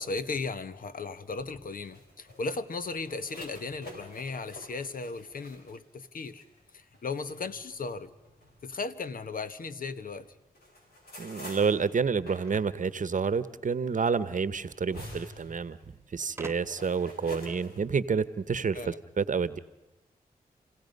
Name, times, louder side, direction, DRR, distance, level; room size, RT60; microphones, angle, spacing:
voice 1, 0.0-6.4 6.7-8.1 8.6-10.3 18.7-19.0, left 4 dB, 65° left, 1.1 m, -36 dB
sound 1, 1.4-9.8 10.2-17.8, left 1 dB, 80° left, 4.8 m, -49 dB
voice 2, 11.2-19.6, right 5 dB, 55° right, 0.9 m, -29 dB
sound 2, 12.4-13.9 15.0-15.1 15.3-15.4 16.4-17.0, right 2 dB, 15° right, 0.8 m, -46 dB
29.0 x 17.0 x 5.3 m
supercardioid pair, 40°, 16 cm